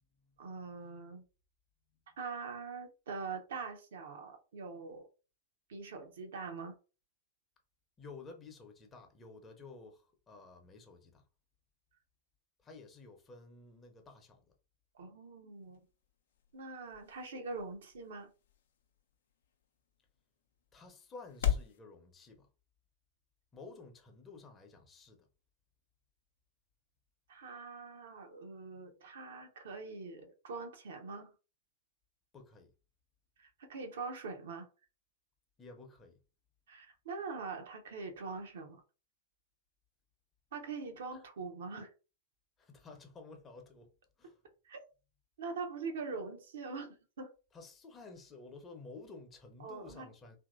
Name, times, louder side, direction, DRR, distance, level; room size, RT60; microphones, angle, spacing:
voice 1, 0.4-1.2 2.2-5.1 5.7-6.8 14.9-15.8 16.5-18.3 27.3-31.3 33.4-34.7 36.7-38.8 40.5-41.9 44.7-44.8 45.4-47.3 49.6-50.1, right 4 dB, 65° right, 0.7 m, -43 dB
voice 2, 8.0-11.2 12.6-14.4 20.7-22.5 23.5-25.3 32.3-32.7 35.6-36.2 41.1-41.2 42.6-43.9 44.2-44.4 47.5-50.4, left 3 dB, 25° left, 0.7 m, -52 dB
sound 1, 15.5-21.8, left 10 dB, 65° left, 0.5 m, -41 dB
2.9 x 2.6 x 2.5 m
figure-of-eight pair, 95°, 0 cm